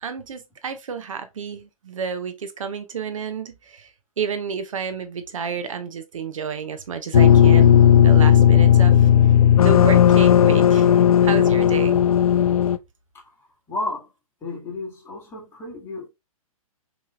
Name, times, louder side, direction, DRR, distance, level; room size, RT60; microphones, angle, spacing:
voice 1, 0.0-3.9 4.2-7.7 8.0-9.1 9.6-10.9 11.2-12.0, right 6 dB, 60° right, 0.7 m, -30 dB
sound 1, 7.1-12.8, left 9 dB, 70° left, 0.4 m, -14 dB
voice 2, 13.7-14.1 14.4-16.1, left 2 dB, 15° left, 1.7 m, -32 dB
5.4 x 3.1 x 2.4 m
figure-of-eight pair, 120°, 19 cm